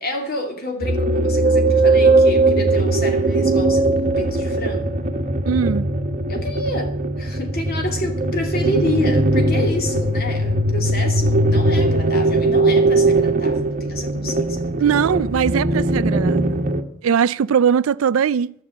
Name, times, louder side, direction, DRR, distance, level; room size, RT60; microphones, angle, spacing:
voice 1, 0.0-5.0 6.3-14.9, left 1 dB, 50° left, 2.6 m, -28 dB
sound 1, 0.8-16.8, right 2 dB, 40° right, 1.0 m, -19 dB
voice 2, 5.5-5.9 14.8-16.7 17.0-18.5, right 7 dB, 80° right, 0.4 m, -20 dB
12.5 x 6.5 x 8.6 m
head